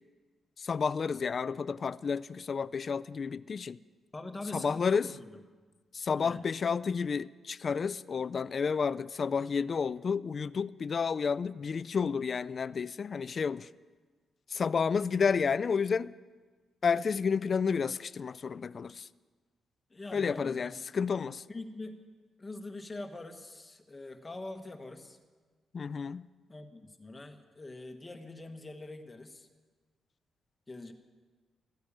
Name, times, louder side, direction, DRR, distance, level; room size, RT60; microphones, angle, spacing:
voice 1, 0.6-3.8 4.5-5.1 5.9-13.7 14.5-16.1 16.8-19.1 20.1-21.4 25.7-26.3, left 5 dB, 40° left, 0.4 m, -31 dB
voice 2, 4.1-5.4 6.2-6.4 19.9-20.8 21.5-22.0 22.4-25.2 26.5-29.5 30.7-30.9, left 2 dB, 20° left, 1.3 m, -44 dB
14.5 x 10.5 x 8.6 m
cardioid pair, 130°, 0 cm